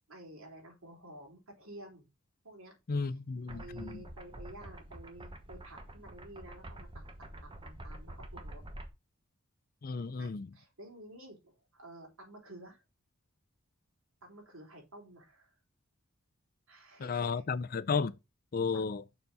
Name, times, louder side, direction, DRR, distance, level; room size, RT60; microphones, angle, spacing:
voice 1, 0.1-2.1 2.4-2.8 3.0-3.1 3.5-8.6 10.1-12.8 14.2-15.5 16.7-17.4 18.7-18.9, right 1 dB, 80° right, 3.5 m, -52 dB
voice 2, 2.9-4.0 9.8-10.5 17.0-18.2 18.5-19.0, left 5 dB, 45° left, 0.4 m, -33 dB
sound 1, 3.5-8.9, right 1 dB, 25° right, 1.1 m, -47 dB
6.9 x 4.1 x 5.3 m
head